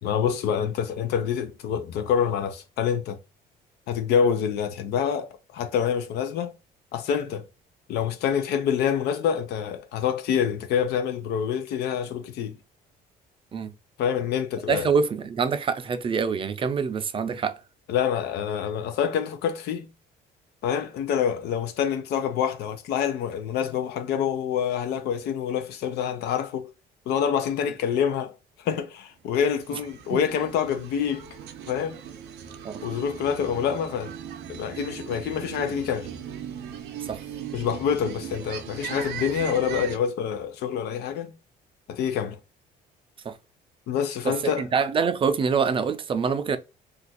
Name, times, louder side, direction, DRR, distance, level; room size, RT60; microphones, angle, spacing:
voice 1, 0.0-3.2 3.9-6.5 6.9-7.4 7.9-12.6 14.0-14.9 17.9-19.9 20.6-26.7 27.1-28.3 28.6-31.3 31.7-32.0 32.8-34.1 34.5-36.1 37.5-41.3 41.9-42.4 43.9-44.7, left 8 dB, 75° left, 0.5 m, -26 dB
voice 2, 14.7-17.6 30.1-30.2 32.6-32.8 37.1-37.2 43.3-43.4 44.2-46.6, right 5 dB, 30° right, 0.4 m, -25 dB
sound 1, 29.4-40.0, right 9 dB, 80° right, 0.6 m, -38 dB
2.5 x 2.3 x 3.9 m
cardioid pair, 110°, 17 cm